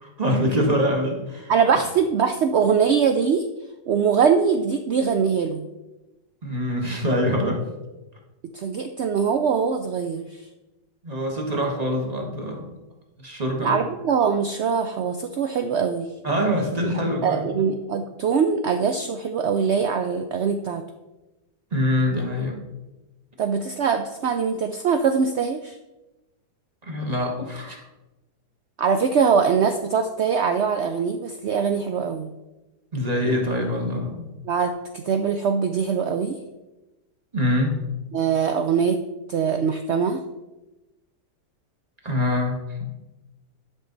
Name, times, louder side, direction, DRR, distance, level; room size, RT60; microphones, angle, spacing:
voice 1, 0.0-1.5 6.4-7.6 11.0-12.7 13.2-13.8 16.2-17.5 21.7-22.6 26.8-27.8 32.9-34.3 37.3-37.8 42.0-42.6, equal, 25° right, 1 dB, 1.3 m, -24 dB
voice 2, 1.5-3.4 3.9-5.7 8.5-10.4 13.6-16.1 17.2-20.8 23.4-25.8 28.8-32.3 34.4-36.4 38.1-39.0 39.3-40.2, right 6 dB, 80° right, 7 dB, 0.6 m, -22 dB
10.5 x 5.7 x 3.9 m, 1.0 s
omnidirectional pair, 1.7 m